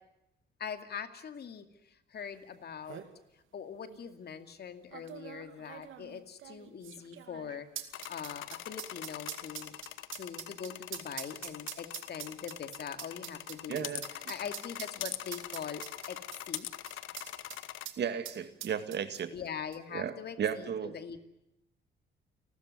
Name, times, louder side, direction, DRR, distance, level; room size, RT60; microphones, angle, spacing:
voice 1, 0.6-3.0 3.5-9.7 10.2-13.9 14.3-15.8 16.1-16.2 16.5-16.7 19.3-21.3, left 7 dB, 55° left, 9 dB, 2.4 m, -42 dB
sound 1, 2.4-2.5 2.7-3.1 3.9-4.0 4.9-17.6 17.9-18.0 18.2-19.5 19.7-19.8, right 11 dB, 80° right, 2.3 m, -44 dB
sound 2, 7.9-17.9, left 13 dB, 80° left, 1.1 m, -43 dB
voice 2, 13.7-14.0 18.0-19.3 19.9-21.0, right 8 dB, 60° right, 11 dB, 2.0 m, -34 dB
29.5 x 13.0 x 9.5 m, 0.89 s
cardioid pair, 90°, 20 cm